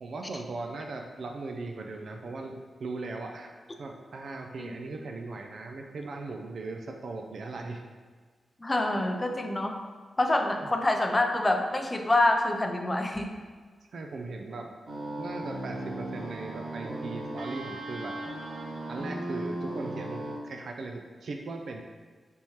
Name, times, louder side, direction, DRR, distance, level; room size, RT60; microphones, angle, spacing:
voice 1, 0.0-3.5 3.8-7.8 13.9-14.7 15.2-18.2 18.9-21.8, right 3 dB, 70° right, 3 dB, 0.4 m, -38 dB
voice 2, 8.6-9.8 10.2-13.3, left 2 dB, 20° left, 4 dB, 0.4 m, -26 dB
sound 1, 14.9-20.4, right 1 dB, 85° right, 0.8 m, -36 dB
4.2 x 3.5 x 3.0 m, 1.5 s
wide cardioid pair, 100°, 0 cm